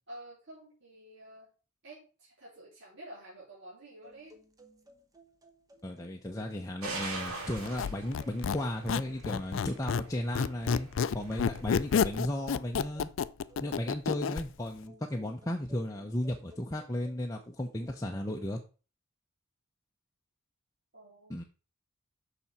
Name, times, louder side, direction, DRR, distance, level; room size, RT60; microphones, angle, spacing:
voice 1, 0.1-1.5 1.8-4.4 20.9-21.4, right 1 dB, 55° right, -7 dB, 3.4 m, -50 dB
sound 1, 4.0-18.2, equal, 15° right, 1.0 m, -59 dB
voice 2, 5.8-10.9 11.1-13.1 13.6-18.6 21.3-21.4, left 1 dB, 15° left, 1 dB, 0.7 m, -35 dB
sound 2, 6.8-12.0, right 3 dB, 75° right, 2.9 m, -43 dB
Squeak, 7.6-10.1 10.3-14.5, left 6 dB, 60° left, 0.3 m, -30 dB
7.0 x 6.0 x 5.7 m, 0.36 s
head